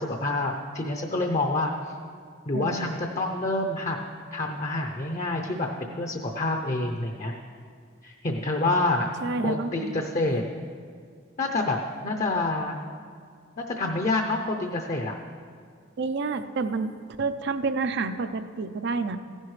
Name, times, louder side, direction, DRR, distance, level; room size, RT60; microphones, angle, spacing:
voice 1, 0.0-1.9 2.5-4.0 4.3-7.3 8.0-9.1 9.4-10.4 11.4-11.8 12.0-12.8 13.6-15.2, left 2 dB, 35° left, 3 dB, 0.6 m, -27 dB
voice 2, 2.5-2.9 9.2-10.4 16.0-16.9 17.2-19.2, right 4 dB, 60° right, 10 dB, 0.5 m, -29 dB
15.0 x 11.0 x 3.2 m, 2.2 s
head